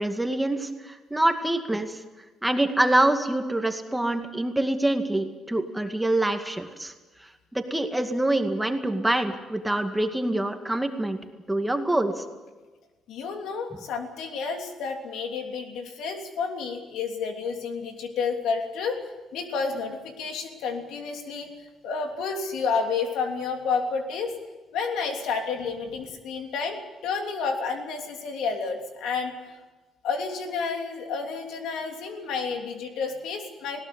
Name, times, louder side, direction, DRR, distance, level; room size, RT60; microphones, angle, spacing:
voice 1, 0.0-2.0 2.4-6.9 7.5-11.2 11.5-12.2, right 1 dB, 10° right, 5 dB, 2.2 m, -25 dB
voice 2, 13.1-19.0 19.3-21.5 21.8-24.4 24.7-29.6 30.0-33.8, left 5 dB, 85° left, 4 dB, 3.1 m, -30 dB
20.0 x 17.5 x 9.5 m, 1.2 s
cardioid pair, 90°, 0 cm